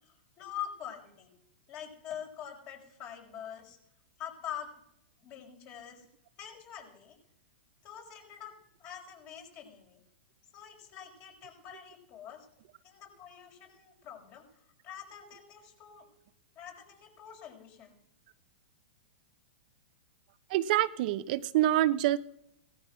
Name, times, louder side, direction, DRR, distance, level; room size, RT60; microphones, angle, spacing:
voice 1, 0.0-1.3 1.7-3.8 4.2-4.7 5.2-6.0 6.4-7.2 7.8-8.5 8.8-10.0 10.5-12.5 12.8-16.1 16.6-17.9, left 9 dB, 40° left, 2 dB, 5.6 m, -45 dB
voice 2, 20.5-22.2, right 14 dB, 55° right, 12 dB, 0.8 m, -26 dB
17.5 x 13.5 x 6.1 m, 0.76 s
hypercardioid pair, 125°, 6 cm